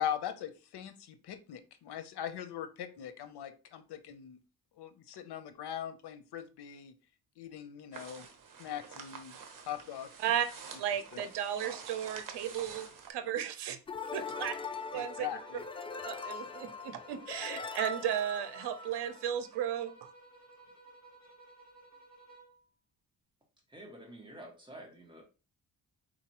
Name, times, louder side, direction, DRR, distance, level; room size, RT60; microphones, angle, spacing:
voice 1, 0.0-4.4 4.8-6.9 7.4-8.3 8.6-9.4 9.6-10.1 11.1-11.2 14.9-15.6, left 9 dB, 80° left, 11 dB, 0.8 m, -40 dB
sound 1, 7.9-13.1, right 6 dB, 55° right, 1.1 m, -48 dB
voice 2, 10.8-13.8 14.1-14.5 14.9-15.3 16.0-19.9, right 10 dB, 90° right, 10 dB, 0.7 m, -34 dB
sound 2, 13.9-19.4, left 4 dB, 15° left, 0.3 m, -41 dB
sound 3, 15.2-22.6, right 2 dB, 40° left, 2.2 m, -56 dB
voice 3, 23.7-25.2, right 1 dB, 10° right, 0 dB, 1.5 m, -49 dB
4.5 x 3.9 x 2.9 m, 0.33 s
cardioid pair, 110°, 39 cm